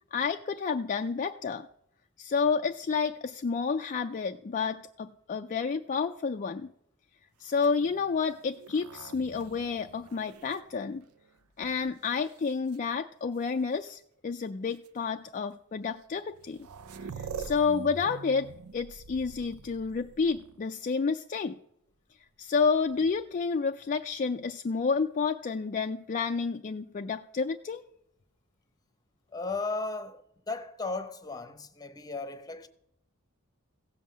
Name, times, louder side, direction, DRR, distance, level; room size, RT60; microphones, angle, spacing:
voice 1, 0.1-1.7 2.2-6.7 7.4-11.0 11.6-16.6 17.2-21.6 22.4-27.8, left 5 dB, 35° left, 0.4 m, -30 dB
sound 1, 7.5-11.4 12.0-12.8 13.9-14.0 14.7-14.9 16.0-16.1 16.3-20.8 22.7-23.4, right 6 dB, 85° right, 0.6 m, -45 dB
voice 2, 29.3-32.7, left 3 dB, 15° left, 0.8 m, -35 dB
16.0 x 5.5 x 7.6 m
head